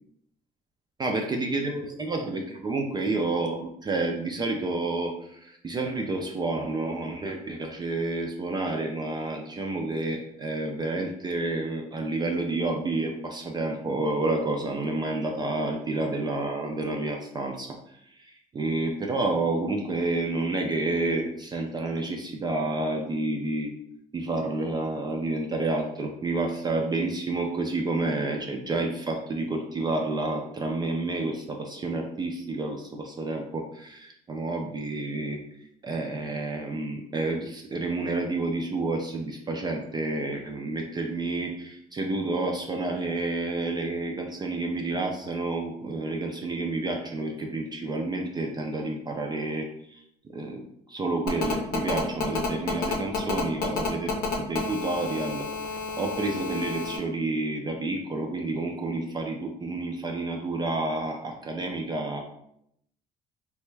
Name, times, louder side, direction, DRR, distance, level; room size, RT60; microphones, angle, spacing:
voice 1, 1.0-23.7 24.1-35.4 35.8-50.0 50.3-50.6 50.9-62.2, right 2 dB, 25° right, 1 dB, 0.4 m, -29 dB
Telephone, 51.3-57.0, left 5 dB, 65° left, 0.7 m, -30 dB
3.3 x 2.2 x 3.1 m, 0.75 s
cardioid pair, 110°, 17 cm